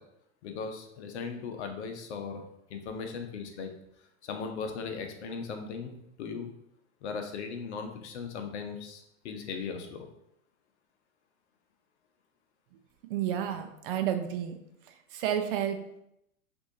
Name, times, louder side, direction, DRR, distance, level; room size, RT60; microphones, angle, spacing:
voice 1, 0.4-2.4 2.7-3.7 4.2-6.5 7.0-10.1, left 5 dB, 55° left, 5 dB, 0.9 m, -38 dB
voice 2, 13.1-14.6 15.1-16.0, right 10 dB, 45° right, 5 dB, 0.6 m, -31 dB
6.0 x 2.7 x 2.7 m, 0.79 s
hypercardioid pair, 105°, 40 cm